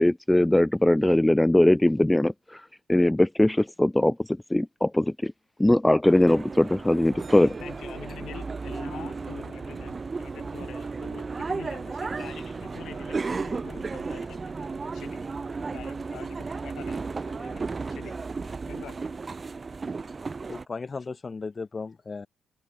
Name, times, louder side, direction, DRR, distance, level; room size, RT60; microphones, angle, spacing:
voice 1, 0.0-5.3 5.6-7.5, left 1 dB, 10° left, 0.5 m, -21 dB
sound 1, 6.0-20.6, right 4 dB, 30° right, 0.8 m, -34 dB
voice 2, 6.9-15.3 15.7-18.2 18.7-19.1, left 10 dB, 70° left, 4.4 m, -46 dB
voice 3, 20.5-22.3, left 4 dB, 30° left, 4.8 m, -36 dB
cardioid pair, 90°, 0 cm